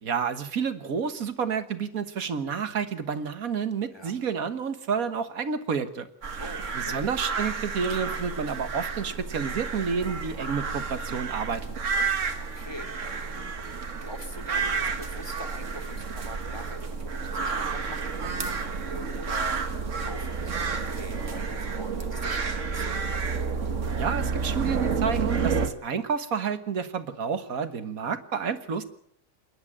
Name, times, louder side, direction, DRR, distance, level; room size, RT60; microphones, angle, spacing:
voice 1, 0.0-6.1 6.8-11.8 23.9-28.8, right 6 dB, 90° right, 10 dB, 1.8 m, -30 dB
sound 1, 6.2-25.7, right 5 dB, 65° right, 1.8 m, -30 dB
voice 2, 6.4-7.0 12.0-23.1, left 1 dB, 20° left, 4 dB, 2.7 m, -44 dB
28.0 x 10.5 x 8.8 m, 0.71 s
omnidirectional pair, 1.4 m